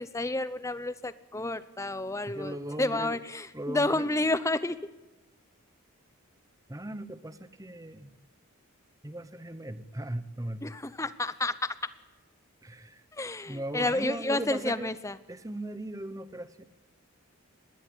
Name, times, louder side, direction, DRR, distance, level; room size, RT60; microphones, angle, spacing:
voice 1, 0.0-4.8 10.6-11.8 13.1-15.2, left 2 dB, 15° left, 14 dB, 0.7 m, -30 dB
voice 2, 2.3-3.2 3.5-4.1 6.7-8.1 9.0-10.6 12.6-13.0 13.5-14.9 15.3-16.6, right 1 dB, 15° right, 12 dB, 0.9 m, -38 dB
20.0 x 17.5 x 9.9 m, 1.1 s
head